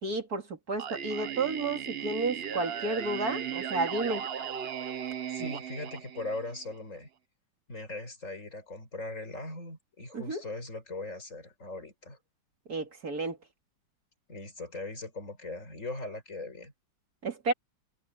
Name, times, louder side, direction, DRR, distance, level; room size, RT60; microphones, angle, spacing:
voice 1, 0.0-4.3 5.4-5.6 10.1-10.4 12.7-13.4 17.2-17.5, right 3 dB, 45° right, 2.8 m, -32 dB
Singing, 0.8-6.7, right 9 dB, 90° right, 0.5 m, -37 dB
voice 2, 5.3-7.1 7.7-12.2 14.3-16.7, left 2 dB, 35° left, 6.0 m, -40 dB
omnidirectional pair, 2.3 m